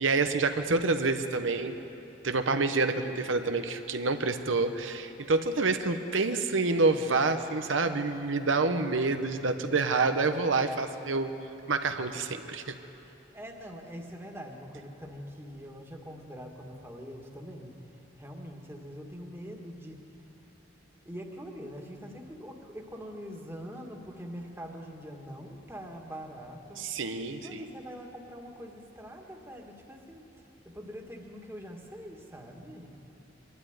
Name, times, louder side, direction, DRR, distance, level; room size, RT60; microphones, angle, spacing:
voice 1, 0.0-1.7 2.2-11.3 11.7-12.7 26.8-27.6, right 3 dB, 90° right, 7 dB, 1.0 m, -27 dB
voice 2, 13.1-20.3 21.0-26.9 27.3-33.0, equal, 15° right, 1 dB, 1.8 m, -44 dB
24.0 x 12.5 x 9.5 m, 3.0 s
head